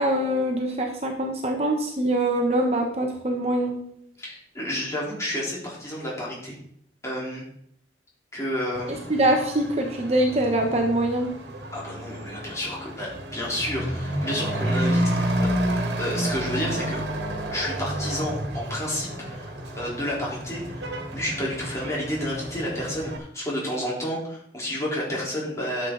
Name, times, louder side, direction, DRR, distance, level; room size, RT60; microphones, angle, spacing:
voice 1, 0.0-3.8 8.9-11.3, right 1 dB, 35° right, 2 dB, 1.2 m, -24 dB
voice 2, 4.2-6.6 7.0-7.4 8.3-9.0 11.7-15.5 16.0-17.0 17.5-19.5 19.8-20.9 21.1-25.9, equal, 15° left, -5 dB, 3.9 m, -30 dB
Truck / Accelerating revving vroom, 8.7-23.2, right 1 dB, 80° right, 1.7 m, -30 dB
12.5 x 7.7 x 4.0 m, 0.69 s
head